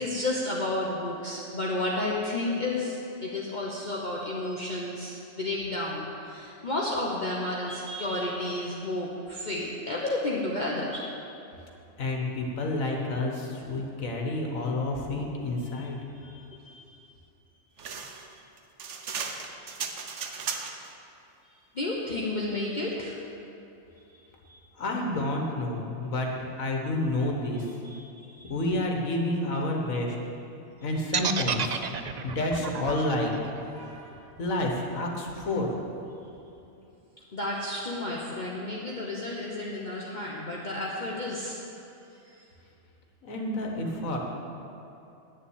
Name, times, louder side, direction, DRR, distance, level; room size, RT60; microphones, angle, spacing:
voice 1, 0.0-11.0 16.2-17.0 17.8-17.9 18.1-18.2 19.5-19.7 21.7-23.2 24.5-24.6 27.8-28.5 33.7-34.2 37.3-41.6 42.3-42.4, left 2 dB, 35° left, -4 dB, 1.1 m, -32 dB
voice 2, 12.0-16.0 24.8-26.3 26.6-27.7 28.5-30.2 30.8-31.8 32.2-33.3 34.4-35.7 43.2-44.2, left 2 dB, 75° left, 0 dB, 1.8 m, -29 dB
sound 1, 17.8-20.9, right 5 dB, 60° right, 1.1 m, -36 dB
sound 2, 31.1-35.2, right 7 dB, 80° right, 0.3 m, -31 dB
10.0 x 7.3 x 8.7 m, 2.7 s
omnidirectional pair, 1.4 m